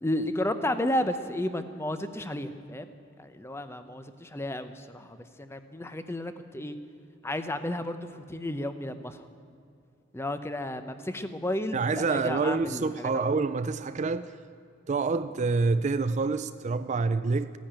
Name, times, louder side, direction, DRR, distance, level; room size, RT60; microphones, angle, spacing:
voice 1, 0.0-2.9 3.2-6.8 7.2-9.2 10.1-13.4, left 1 dB, 10° left, 0.7 m, -32 dB
voice 2, 11.7-14.3 14.9-17.5, right 4 dB, 35° right, 0.4 m, -27 dB
15.5 x 10.5 x 8.8 m
head